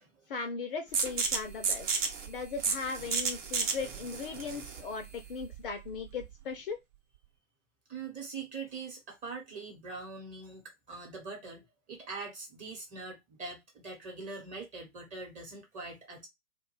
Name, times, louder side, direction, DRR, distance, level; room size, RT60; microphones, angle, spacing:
voice 1, 0.3-1.9 2.2-6.8, left 4 dB, 40° left, 0.4 m, -38 dB
sound 1, 0.9-6.4, right 5 dB, 55° right, 0.9 m, -33 dB
voice 2, 3.7-4.0 4.3-4.7 7.9-16.3, right 4 dB, 20° right, 0.9 m, -43 dB
2.4 x 2.2 x 3.1 m
figure-of-eight pair, 115°, 44 cm